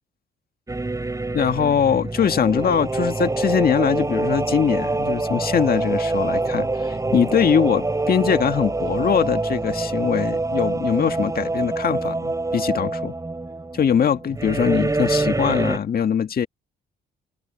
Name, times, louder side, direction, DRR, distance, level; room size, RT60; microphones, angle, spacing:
sound 1, 0.7-15.8, right 2 dB, 15° right, 3.2 m, -25 dB
voice 1, 1.3-13.1 13.7-16.5, left 7 dB, 50° left, 1.8 m, -22 dB
open air
cardioid pair, 90°, 20 cm